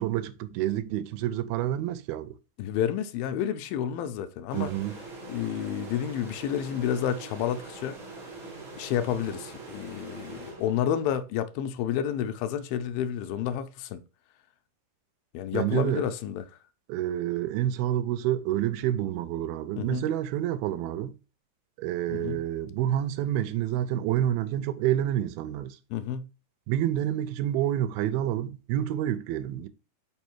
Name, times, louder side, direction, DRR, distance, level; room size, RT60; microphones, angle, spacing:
voice 1, 0.0-2.4 4.5-5.0 15.5-16.0 16.9-21.1 21.8-25.8 26.7-29.7, right 12 dB, 85° right, 2.4 m, -28 dB
voice 2, 2.6-4.7 5.3-8.0 8.8-14.0 15.3-16.4 19.8-20.0 22.1-22.4 25.9-26.3, left 9 dB, 80° left, 2.3 m, -30 dB
sound 1, 4.5-11.2, right 3 dB, 35° right, 1.4 m, -43 dB
5.6 x 4.5 x 4.4 m
omnidirectional pair, 4.3 m